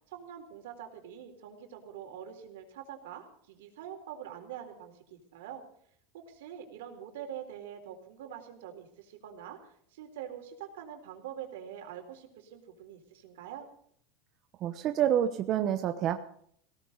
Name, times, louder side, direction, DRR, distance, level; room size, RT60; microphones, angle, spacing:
voice 1, 0.0-5.6 6.1-13.7, right 9 dB, 85° right, 4 dB, 4.0 m, -45 dB
voice 2, 14.6-16.2, right 10 dB, 40° right, 8 dB, 1.0 m, -28 dB
19.0 x 17.0 x 4.0 m, 0.64 s
supercardioid pair, 155°, 0 cm